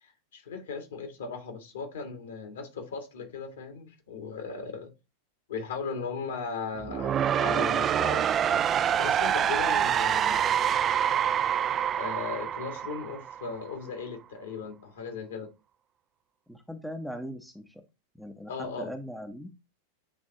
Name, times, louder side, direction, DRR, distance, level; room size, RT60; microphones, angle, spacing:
voice 1, 0.0-4.9 5.5-10.8 12.0-15.5 18.5-18.9, left 5 dB, 60° left, 1.7 m, -37 dB
sound 1, 6.8-13.7, right 9 dB, 25° right, 0.3 m, -26 dB
voice 2, 16.5-17.8 18.2-19.5, equal, ahead, 0.7 m, -39 dB
7.8 x 3.5 x 3.7 m
figure-of-eight pair, 90°, 0 cm